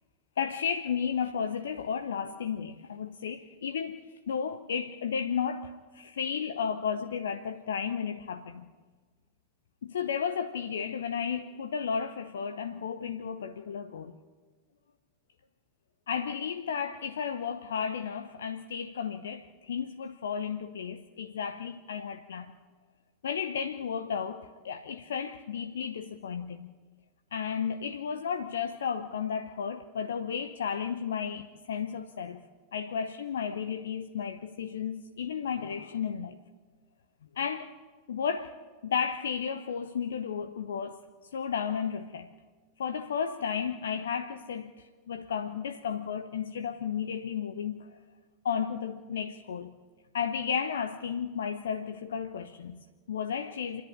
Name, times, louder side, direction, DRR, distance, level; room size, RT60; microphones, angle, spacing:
voice 1, 0.4-8.7 9.8-14.2 16.1-22.5 23.2-26.7 27.3-32.4 32.7-36.4 37.4-37.7 38.1-38.5 38.8-41.0 41.3-42.3 42.8-44.7 45.1-48.0 48.4-49.7 50.1-53.8, left 7 dB, 65° left, 0.7 m, -33 dB
28.0 x 11.0 x 8.8 m
figure-of-eight pair, 90°, 0 cm